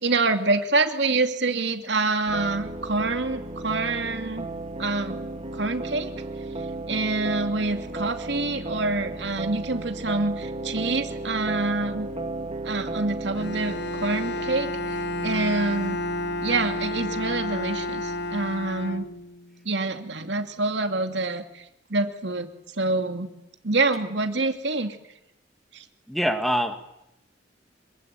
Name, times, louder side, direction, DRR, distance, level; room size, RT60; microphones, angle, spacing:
voice 1, 0.0-4.5 4.8-5.3 5.5-6.1 6.9-12.1 12.6-16.0 16.4-19.1 19.6-21.6 21.9-23.3 23.6-25.0 25.7-25.8, right 3 dB, 70° right, 6 dB, 2.7 m, -26 dB
sound 1, 2.3-19.0, right 2 dB, 30° right, 2.6 m, -35 dB
Bowed string instrument, 13.3-19.5, left 1 dB, 65° left, 1.5 m, -31 dB
voice 2, 26.1-26.7, equal, ahead, 6 dB, 2.1 m, -24 dB
26.5 x 24.0 x 9.4 m, 0.83 s
head